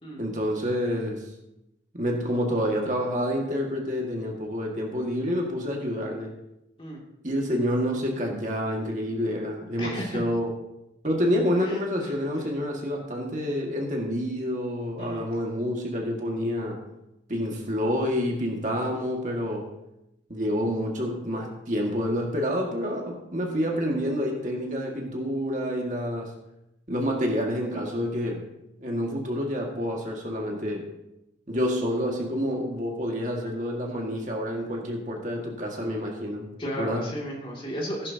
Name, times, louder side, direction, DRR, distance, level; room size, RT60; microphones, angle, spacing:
voice 1, 0.2-1.3 1.9-6.3 7.2-10.5 11.0-16.8 17.3-19.7 20.3-26.3 26.9-28.5 28.8-30.9 31.5-36.5 36.8-37.1, equal, 45° right, 0 dB, 1.9 m, -28 dB
voice 2, 9.8-10.2 11.6-11.8 12.0-12.1 15.0-15.3 36.6-38.1, equal, 30° left, -2 dB, 2.5 m, -34 dB
15.0 x 11.0 x 2.8 m, 0.86 s
head